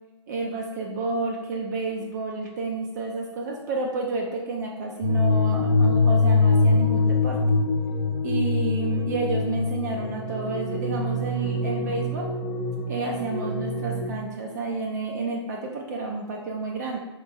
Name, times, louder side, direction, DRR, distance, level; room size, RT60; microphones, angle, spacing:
voice 1, 0.3-7.4 8.2-12.3 12.9-17.0, right 3 dB, 35° right, 0 dB, 0.4 m, -30 dB
sound 1, 5.0-14.1, left 3 dB, 30° left, 0.9 m, -24 dB
3.7 x 2.9 x 2.6 m, 1.0 s
hypercardioid pair, 155°, 15 cm